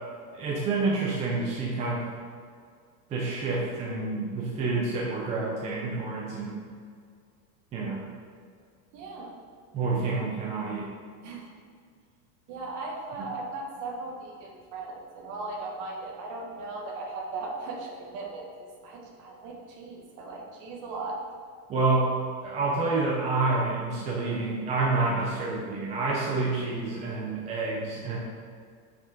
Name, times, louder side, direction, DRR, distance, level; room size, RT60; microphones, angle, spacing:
voice 1, 0.3-2.0 3.1-6.6 7.7-8.0 9.7-10.9 21.7-22.2 22.4-28.2, right 3 dB, 15° right, -4 dB, 0.5 m, -28 dB
voice 2, 8.9-9.3 11.2-11.5 12.5-21.2, right 3 dB, 40° right, 0 dB, 1.3 m, -38 dB
6.0 x 5.1 x 4.9 m, 2.1 s
supercardioid pair, 160°, 45 cm